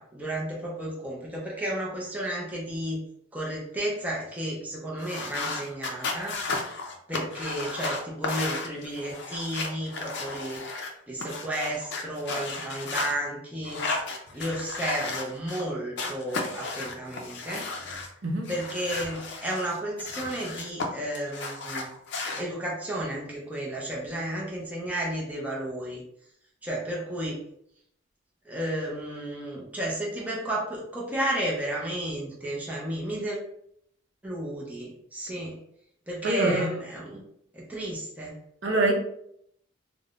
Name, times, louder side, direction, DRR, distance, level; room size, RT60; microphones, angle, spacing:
voice 1, 0.0-3.0 3.3-6.4 7.1-10.6 11.1-13.8 14.3-17.7 18.5-21.9 22.4-26.0 26.6-27.4 28.5-33.4 34.2-35.6 36.1-37.2 37.5-38.4, right 1 dB, 10° right, -4 dB, 0.5 m, -32 dB
sound 1, 5.0-10.9 11.2-13.1 13.6-15.6 16.0-18.1 18.4-20.9 21.1-22.4, left 3 dB, 60° left, 0.4 m, -34 dB
voice 2, 36.2-36.7 38.6-38.9, right 2 dB, 65° right, 0 dB, 0.6 m, -24 dB
3.4 x 2.0 x 2.4 m, 0.71 s
head